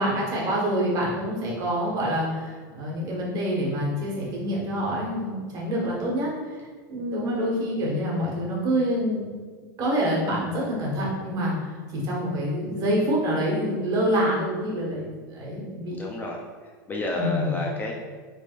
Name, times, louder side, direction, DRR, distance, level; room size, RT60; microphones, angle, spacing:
voice 1, 0.0-6.6 6.9-9.2 9.8-16.0 17.1-17.6, equal, 40° right, -3 dB, 1.4 m, -26 dB
voice 2, 16.0-16.4 16.9-17.9, left 2 dB, 15° left, -1 dB, 0.5 m, -30 dB
4.8 x 3.4 x 2.5 m, 1.5 s
supercardioid pair, 125°, 11 cm